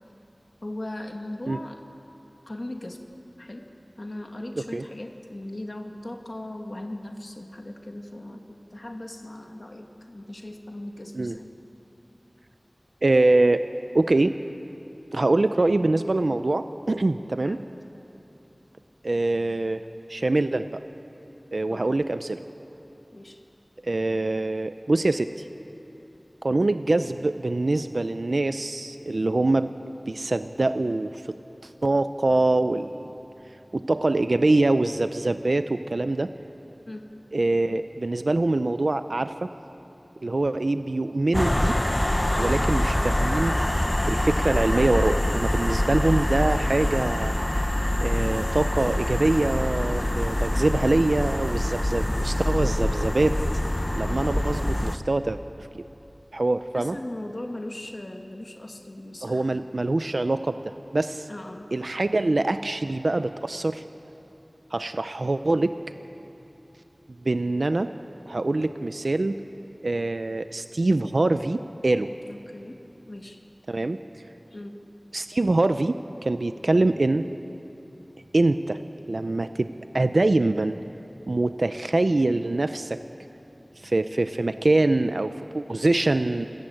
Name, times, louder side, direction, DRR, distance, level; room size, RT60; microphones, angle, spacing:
voice 1, 0.6-1.8 2.5-3.0 3.4-3.7 4.0-8.4 8.7-11.6 17.3-17.6 21.7-21.9 23.1-23.4 36.9-37.1 42.3-42.6 56.7-59.8 61.3-61.7 72.3-72.8 73.1-73.4 74.5-74.8, left 1 dB, 55° left, 3 dB, 2.0 m, -38 dB
voice 2, 13.0-13.6 13.9-14.3 15.1-17.6 19.0-19.8 20.1-20.8 21.5-22.4 23.8-25.5 26.4-29.7 30.1-31.4 31.6-33.1 33.7-36.3 37.3-39.5 40.2-41.8 42.4-43.6 44.0-47.4 48.0-53.4 54.0-55.8 56.3-57.0 59.2-61.3 61.7-63.8 64.7-65.7 67.2-67.9 68.3-69.4 69.8-72.1 73.7-74.0 75.1-77.2 78.3-78.8 79.1-79.7 79.9-80.8 81.3-83.0 83.8-86.5, right 2 dB, 85° right, 10 dB, 0.6 m, -24 dB
sound 1, 41.3-55.0, left 1 dB, 30° left, 0.8 m, -25 dB
27.5 x 14.0 x 8.9 m, 2.9 s
wide cardioid pair, 45°, 0 cm